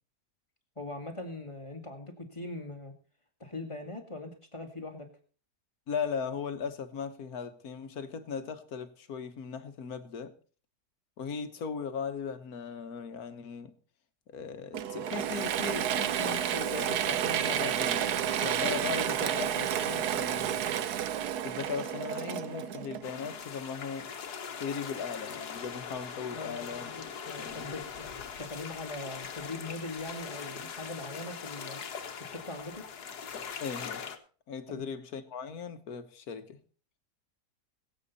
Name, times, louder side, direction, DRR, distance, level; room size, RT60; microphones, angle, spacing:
voice 1, 0.8-2.9 3.4-5.1 26.3-28.1 28.3-31.8 32.2-32.9 34.7-34.8, left 2 dB, 20° left, 2.1 m, -41 dB
voice 2, 5.9-10.3 11.2-13.7 14.3-20.6 21.4-24.1 24.6-26.9 27.4-27.7 33.6-34.0 34.5-36.6, left 6 dB, 70° left, 1.7 m, -38 dB
Mechanisms / Drill, 14.7-23.3, right 10 dB, 80° right, 1.3 m, -31 dB
sound 1, 23.0-34.2, left 7 dB, 90° left, 1.8 m, -41 dB
22.0 x 8.2 x 4.1 m
omnidirectional pair, 1.7 m